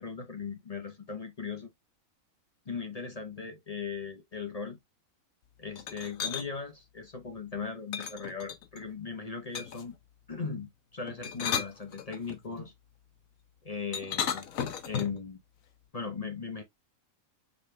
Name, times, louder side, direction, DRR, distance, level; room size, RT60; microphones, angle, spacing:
voice 1, 0.0-1.7 2.7-4.8 5.6-10.0 10.3-12.7 13.6-14.5 14.8-15.4 15.9-16.6, left 5 dB, 35° left, 0.8 m, -38 dB
sound 1, 5.8-6.5 7.9-8.8 9.5-9.9 11.1-12.4 13.9-15.3, left 8 dB, 75° left, 1.2 m, -34 dB
5.1 x 3.4 x 3.1 m
omnidirectional pair, 1.5 m